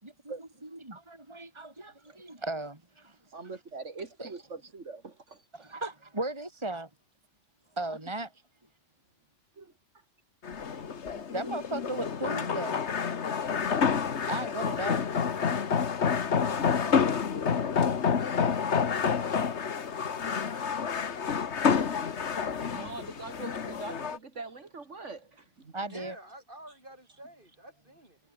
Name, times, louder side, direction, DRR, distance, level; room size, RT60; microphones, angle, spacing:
voice 1, 0.0-3.2 4.2-4.3 5.5-6.9 7.8-8.3 10.7-12.8 14.2-15.0 22.2-22.3 25.7-26.2, right 2 dB, 20° right, 3.6 m, -37 dB
voice 2, 3.3-5.5 9.6-9.7 17.1-17.2 22.7-25.8, right 4 dB, 75° right, 2.9 m, -43 dB
sound 1, 10.4-24.2, left 6 dB, 65° left, 1.6 m, -29 dB
voice 3, 25.8-28.2, right 1 dB, 45° right, 7.2 m, -50 dB
omnidirectional pair, 1.3 m